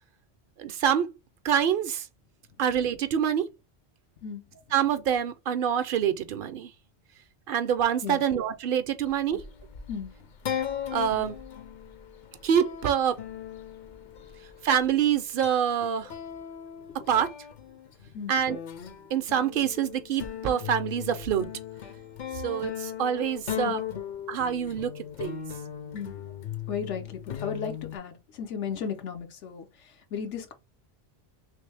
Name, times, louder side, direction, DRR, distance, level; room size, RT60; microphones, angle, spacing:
voice 1, 0.6-1.1 1.4-2.1 2.6-3.5 4.7-6.7 7.5-9.4 10.9-11.4 12.4-13.2 14.6-16.1 17.1-17.3 18.3-18.6 19.1-21.5 22.4-23.8 24.3-25.4, right 8 dB, 60° right, 0.6 m, -26 dB
sound 1, 9.0-15.0 15.4-28.0, left 9 dB, 55° left, 0.6 m, -38 dB
voice 2, 23.6-24.0 25.9-26.1 26.7-30.5, left 7 dB, 90° left, 1.1 m, -35 dB
3.3 x 3.0 x 3.3 m
omnidirectional pair, 1.2 m